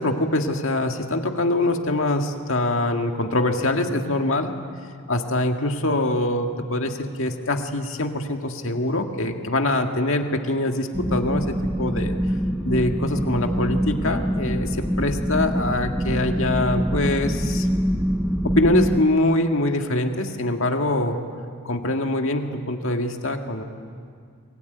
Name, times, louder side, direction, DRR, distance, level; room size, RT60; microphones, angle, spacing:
voice 1, 0.0-4.5 5.1-12.2 12.6-17.7 18.4-21.2 21.6-23.6, left 1 dB, 60° left, 4 dB, 1.9 m, -24 dB
sound 1, 10.9-19.0, equal, 5° right, 0.6 m, -25 dB
23.5 x 21.5 x 9.4 m, 2.2 s
head